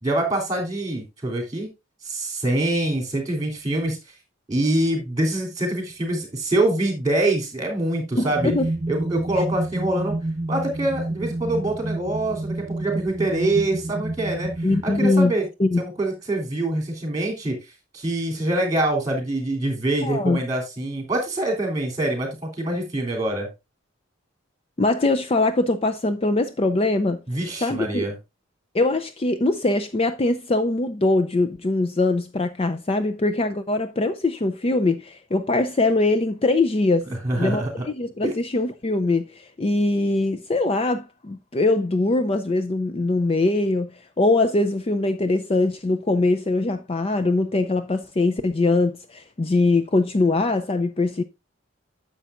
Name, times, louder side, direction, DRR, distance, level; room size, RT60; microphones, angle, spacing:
voice 1, 0.0-1.7 2.0-4.0 4.5-8.5 8.9-10.2 10.5-15.5 15.8-17.6 17.9-23.5 27.3-28.1 37.1-37.8 38.2-38.3, right 1 dB, 20° right, 3.3 m, -25 dB
voice 2, 8.2-8.7 14.6-15.3 15.6-15.8 20.0-20.4 24.8-27.2 27.6-28.0 28.7-37.1 37.4-43.9 44.2-51.2, left 2 dB, 30° left, 0.4 m, -22 dB
sound 1, 8.3-15.1, right 2 dB, 35° right, 0.5 m, -29 dB
10.0 x 7.2 x 2.5 m
head